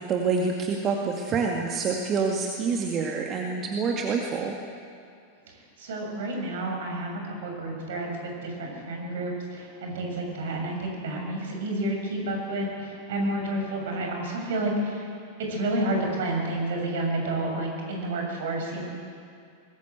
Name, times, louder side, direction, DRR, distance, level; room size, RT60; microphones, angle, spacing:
voice 1, 0.0-4.6, right 5 dB, 30° right, 1 dB, 2.1 m, -27 dB
voice 2, 5.8-15.1 15.5-18.8, right 1 dB, 60° right, 1 dB, 6.7 m, -30 dB
22.5 x 20.5 x 8.0 m, 2.3 s
figure-of-eight pair, 90°, 0 cm